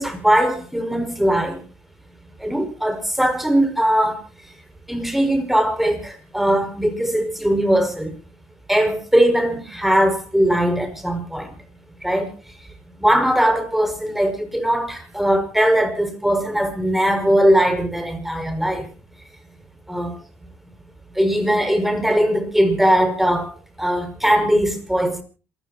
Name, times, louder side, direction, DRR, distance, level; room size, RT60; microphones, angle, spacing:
voice 1, 0.0-1.6 2.4-4.2 4.9-8.1 8.7-11.5 12.0-12.3 13.0-18.9 19.9-20.2 21.2-23.5 23.8-25.2, equal, 5° right, 5.6 m, -20 dB
27.5 x 15.0 x 2.9 m
supercardioid pair, 85°, 5 cm